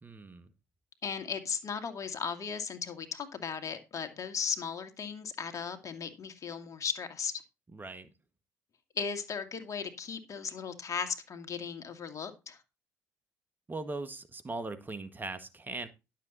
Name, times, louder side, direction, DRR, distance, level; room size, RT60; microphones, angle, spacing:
voice 1, 0.0-0.5 7.7-8.1 13.7-15.9, right 3 dB, 25° right, 1.7 m, -39 dB
voice 2, 1.0-7.3 9.0-12.6, left 6 dB, 50° left, 2.3 m, -36 dB
11.5 x 7.7 x 4.1 m
hypercardioid pair, 60°, 7 cm